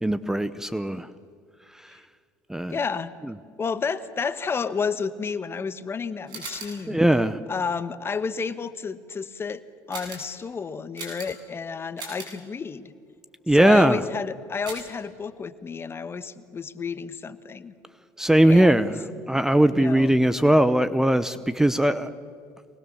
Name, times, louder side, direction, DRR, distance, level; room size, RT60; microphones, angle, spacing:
voice 1, 0.0-1.1 1.8-2.0 2.5-2.8 6.9-7.4 13.5-14.0 18.2-19.0 19.3-22.1, right 1 dB, 5° right, 14 dB, 0.7 m, -20 dB
voice 2, 2.7-3.1 3.6-7.0 7.5-9.6 9.9-12.9 13.5-17.7 18.5-18.8 19.7-20.1, left 5 dB, 30° left, 13 dB, 1.1 m, -31 dB
sound 1, 6.3-6.9 9.9-10.4 11.0-11.5 12.0-12.4 14.7-15.0, right 3 dB, 60° right, 8.0 m, -39 dB
24.5 x 19.5 x 7.1 m, 2.2 s
supercardioid pair, 90°, 8 cm